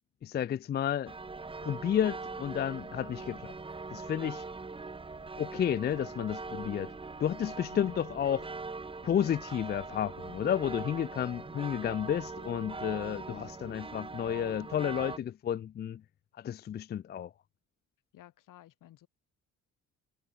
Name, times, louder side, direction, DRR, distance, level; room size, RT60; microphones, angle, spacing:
voice 1, 0.2-1.1 1.6-3.5 3.9-4.4 5.4-6.9 7.2-8.4 9.0-16.0 16.4-17.3, left 9 dB, 30° left, 0.4 m, -31 dB
sound 1, 1.1-15.2, right 3 dB, 15° right, 1.7 m, -42 dB
voice 2, 7.7-8.1 18.1-19.1, left 14 dB, 75° left, 3.9 m, -53 dB
cardioid pair, 150°, 32 cm